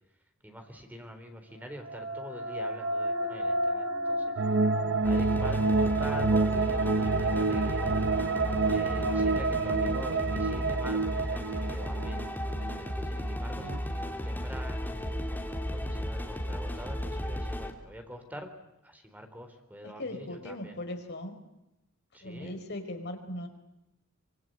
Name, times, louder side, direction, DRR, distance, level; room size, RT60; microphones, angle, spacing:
voice 1, 0.4-4.2 5.0-7.9 8.7-14.9 15.7-18.5 18.8-20.8 22.1-22.6, equal, 10° right, 6 dB, 3.9 m, -45 dB
sound 1, 1.6-10.9, right 1 dB, 70° right, 4.4 m, -33 dB
sound 2, 4.4-12.9 13.2-13.3 13.5-13.8, right 3 dB, 55° right, 0.9 m, -29 dB
sound 3, 5.0-17.7, equal, 10° left, 3.0 m, -34 dB
voice 2, 19.8-21.3 22.2-23.5, left 1 dB, 55° left, 5 dB, 4.7 m, -39 dB
25.0 x 24.0 x 9.2 m, 0.91 s
head